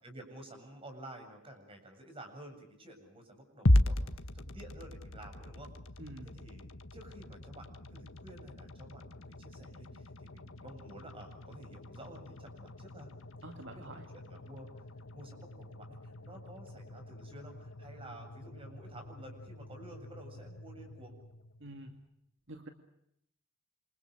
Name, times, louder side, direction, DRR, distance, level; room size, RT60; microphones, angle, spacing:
voice 1, 0.0-5.7 6.2-13.1 13.5-14.7 15.1-21.2, right 1 dB, 25° right, 5 dB, 7.8 m, -51 dB
sound 1, 3.7-21.9, left 1 dB, 70° left, 1.7 m, -37 dB
voice 2, 6.0-6.3 13.4-14.0 21.6-22.0 22.5-22.7, right 2 dB, 60° right, 5 dB, 2.3 m, -47 dB
28.5 x 27.0 x 6.7 m, 0.76 s
head